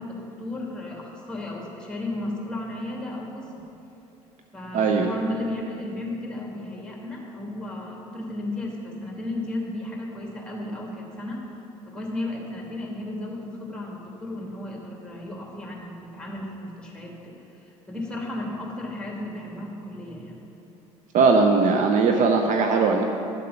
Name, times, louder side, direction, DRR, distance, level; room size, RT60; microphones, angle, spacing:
voice 1, 0.0-3.5 4.5-11.4 11.8-17.3 17.6-20.4, left 1 dB, 5° left, -2 dB, 2.6 m, -34 dB
voice 2, 4.7-5.1 21.1-23.0, right 4 dB, 45° right, 3 dB, 0.8 m, -19 dB
11.0 x 7.5 x 5.6 m, 2.8 s
figure-of-eight pair, 60°, 17 cm